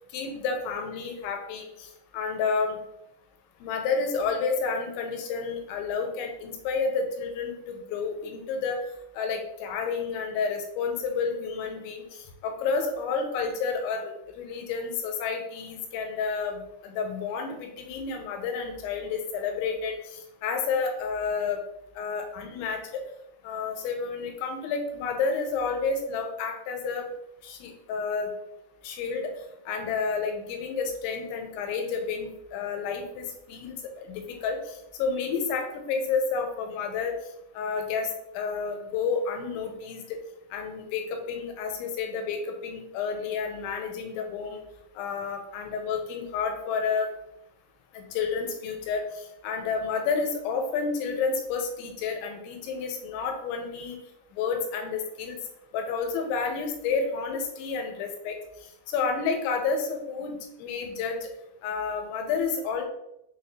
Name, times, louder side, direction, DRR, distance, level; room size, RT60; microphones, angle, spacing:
voice 1, 0.1-2.8 3.6-8.8 9.1-21.6 22.0-23.0 23.4-27.1 27.4-28.3 28.8-29.3 29.7-37.1 37.5-38.1 38.3-40.2 40.5-44.6 45.0-47.1 47.9-54.0 54.3-55.4 55.7-58.4 58.9-61.3 61.6-62.9, left 5 dB, 85° left, 4 dB, 3.3 m, -30 dB
6.9 x 4.4 x 3.7 m, 0.84 s
omnidirectional pair, 5.3 m